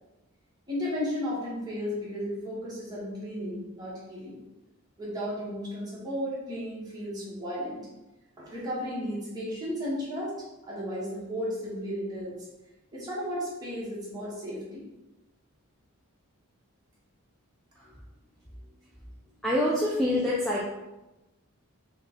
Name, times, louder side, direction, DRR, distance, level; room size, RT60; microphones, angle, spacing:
voice 1, 0.7-4.4 5.0-7.9 8.4-10.3 10.6-12.4 12.9-14.8, equal, 20° right, -7 dB, 1.3 m, -34 dB
voice 2, 19.4-20.7, left 1 dB, ahead, -6 dB, 0.5 m, -25 dB
4.1 x 2.4 x 4.3 m, 1.0 s
head